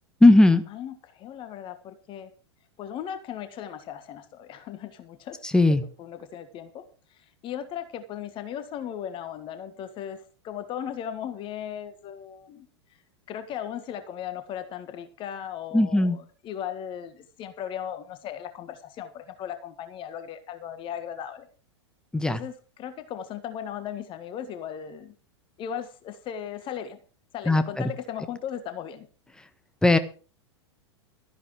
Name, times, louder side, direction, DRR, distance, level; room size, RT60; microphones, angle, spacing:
voice 1, 0.2-0.6 5.5-5.8 15.7-16.2 22.1-22.4 27.5-27.9 29.8-30.0, left 2 dB, 5° left, 11 dB, 1.3 m, -18 dB
voice 2, 0.7-2.3 2.8-5.4 5.7-6.8 7.1-12.7 13.3-21.5 22.3-25.1 25.6-27.0 27.3-29.1, left 9 dB, 35° left, 10 dB, 1.6 m, -37 dB
13.5 x 11.0 x 4.9 m, 0.37 s
figure-of-eight pair, 95°, 15 cm